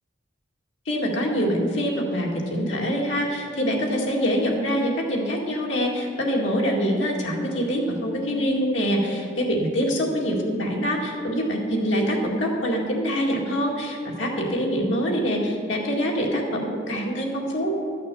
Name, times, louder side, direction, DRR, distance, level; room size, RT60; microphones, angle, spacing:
voice 1, 0.9-17.7, equal, 85° left, -1 dB, 2.2 m, -25 dB
12.5 x 6.6 x 7.0 m, 2.5 s
head